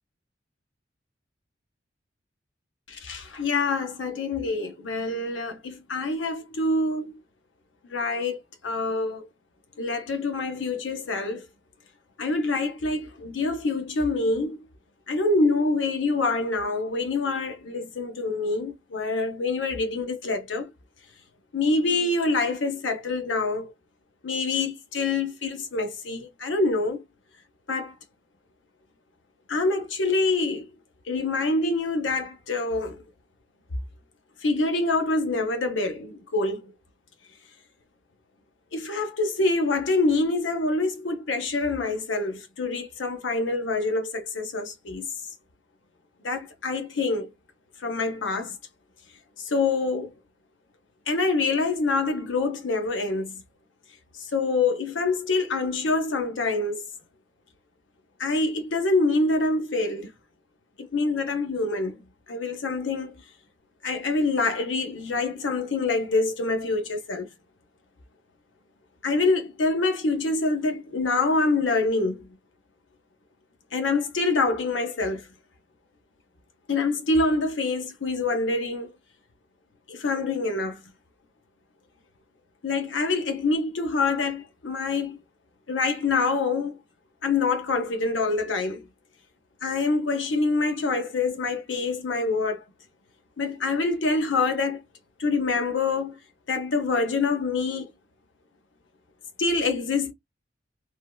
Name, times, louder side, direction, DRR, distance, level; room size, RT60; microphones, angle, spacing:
voice 1, 2.9-7.2 7.9-8.4 8.6-9.3 9.8-11.4 12.2-14.7 15.1-20.7 21.5-23.7 24.2-27.0 27.7-27.9 29.5-30.7 31.1-33.0 34.4-36.6 38.7-45.1 46.2-47.3 47.8-48.6 49.4-50.1 51.1-53.3 54.2-56.9 58.2-60.1 60.8-62.0 62.3-63.1 63.8-67.3 69.0-72.3 73.7-75.3 76.7-78.9 79.9-80.8 82.6-85.2 85.7-86.8 87.2-88.8 89.6-92.6 93.4-94.8 95.2-96.2 96.5-97.9 99.4-100.1, left 3 dB, 90° left, 0.9 m, -26 dB
3.6 x 2.2 x 2.2 m
head